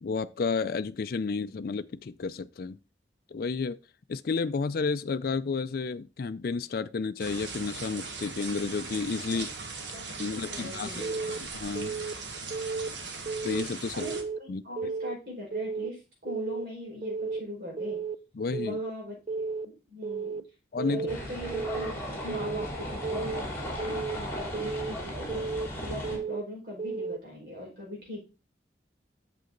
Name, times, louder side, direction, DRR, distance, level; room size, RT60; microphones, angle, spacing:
voice 1, 0.0-2.8 3.3-3.8 4.1-9.5 10.2-11.0 11.4-12.0 13.4-14.1 14.5-14.6 18.4-18.8 20.7-21.1, left 4 dB, 55° left, 0.4 m, -31 dB
sound 1, 7.2-14.2, right 4 dB, 85° right, 1.4 m, -39 dB
voice 2, 9.9-11.3 12.8-13.0 13.9-18.0 18.6-20.4 20.9-28.2, left 1 dB, 60° right, 5.1 m, -41 dB
Keyboard (musical) / Alarm, 11.0-11.4 11.8-12.1 12.5-12.9 13.3-13.6 14.0-14.4 14.8-15.1 15.5-15.9 16.3-16.6 17.0-17.4 17.8-18.2 18.5-18.9 19.3-19.7 20.0-20.4 20.8-21.2 21.5-21.9 22.3-22.7 23.0-23.4 23.8-24.2 24.5-24.9 25.3-25.7 26.0-26.4 26.8-27.2, right 4 dB, 35° right, 0.4 m, -33 dB
sound 2, 21.1-26.2, equal, 15° left, 3.2 m, -36 dB
8.2 x 6.9 x 3.8 m
head